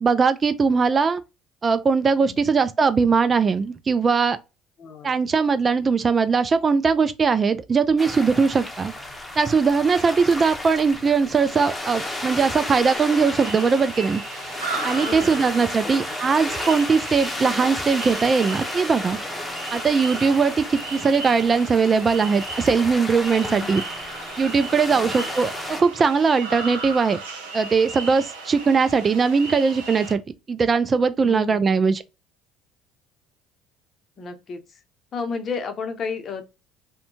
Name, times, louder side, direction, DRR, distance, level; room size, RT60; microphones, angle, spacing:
voice 1, 0.0-1.2 1.6-4.4 5.0-8.9 9.4-14.2 14.8-19.2 19.7-23.8 24.4-27.2 27.5-30.2 30.5-32.0, right 5 dB, 35° right, 0.3 m, -20 dB
voice 2, 2.2-2.6 4.8-5.3 15.0-15.5 15.8-16.2 23.4-23.9 24.9-25.3 31.2-31.8 34.2-34.6 35.1-36.4, left 5 dB, 45° left, 0.7 m, -33 dB
sound 1, 8.0-25.8, left 1 dB, 15° left, 0.8 m, -33 dB
sound 2, 12.9-30.1, right 3 dB, 90° right, 0.8 m, -36 dB
2.6 x 2.2 x 2.7 m
hypercardioid pair, 70°, 0 cm